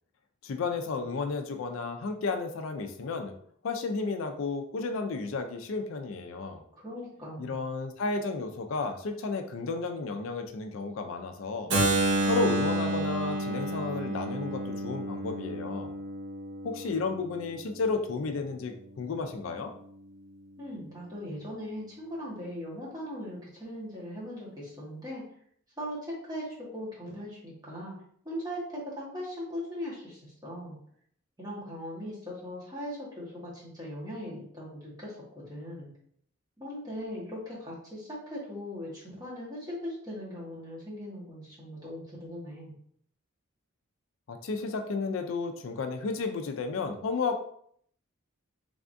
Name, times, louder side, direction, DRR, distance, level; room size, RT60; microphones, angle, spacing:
voice 1, 0.4-3.3 3.6-6.6 7.4-11.7 12.2-15.9 16.6-19.7 44.3-47.4, left 4 dB, 70° left, 5 dB, 0.4 m, -32 dB
voice 2, 6.7-7.6 20.6-25.2 25.8-27.9 28.2-30.8 31.4-35.9 36.6-42.8, equal, 20° right, -6 dB, 1.3 m, -39 dB
Keyboard (musical), 11.7-17.5, right 1 dB, 55° right, 0.8 m, -30 dB
3.4 x 3.4 x 2.5 m, 0.64 s
head